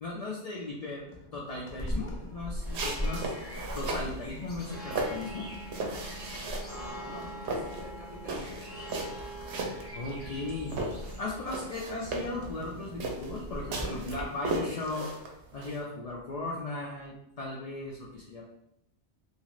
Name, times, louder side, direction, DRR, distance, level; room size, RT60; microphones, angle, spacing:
voice 1, 0.0-3.3 3.7-5.5 9.9-10.8 11.2-15.1 15.5-18.4, left 2 dB, 80° left, -3 dB, 0.3 m, -37 dB
sound 1, 0.7-13.7, left 2 dB, 55° left, 0.6 m, -49 dB
sound 2, 1.8-14.2, equal, 15° left, 0.5 m, -40 dB
sound 3, 2.6-4.1 4.6-6.8 7.1-10.4 10.7-15.8, right 2 dB, 70° right, 0.8 m, -36 dB
voice 2, 6.6-8.6, right 1 dB, 50° right, -4 dB, 1.0 m, -46 dB
2.7 x 2.4 x 2.9 m, 0.81 s
omnidirectional pair, 1.2 m